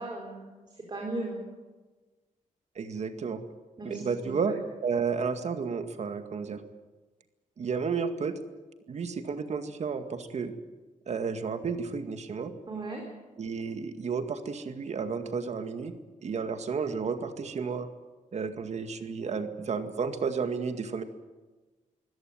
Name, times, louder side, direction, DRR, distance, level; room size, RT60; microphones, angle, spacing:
voice 1, 0.0-1.4 3.8-4.5 12.7-13.0, right 2 dB, 35° right, 0 dB, 4.7 m, -37 dB
voice 2, 2.8-3.4 3.8-4.6 4.8-6.6 7.6-8.3 8.9-10.5 11.1-12.5 13.4-15.9 16.2-17.9 18.3-21.0, right 5 dB, 55° right, 8 dB, 2.0 m, -32 dB
24.5 x 16.5 x 9.3 m, 1.2 s
wide cardioid pair, 120°, 14 cm